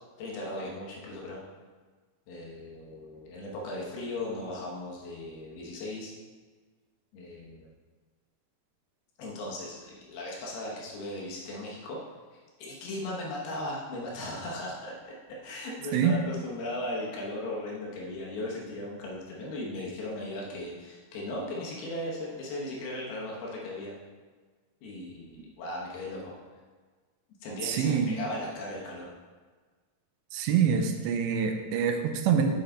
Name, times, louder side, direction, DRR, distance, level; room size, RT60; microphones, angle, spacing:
voice 1, 0.2-1.4 2.3-6.1 7.1-7.7 9.2-12.0 12.6-23.9 24.8-26.3 27.4-29.1, left 1 dB, 70° left, -3 dB, 2.8 m, -37 dB
voice 2, 27.6-28.2 30.3-32.6, right 7 dB, 85° right, 5 dB, 2.8 m, -25 dB
8.1 x 5.6 x 3.8 m, 1.4 s
omnidirectional pair, 5.1 m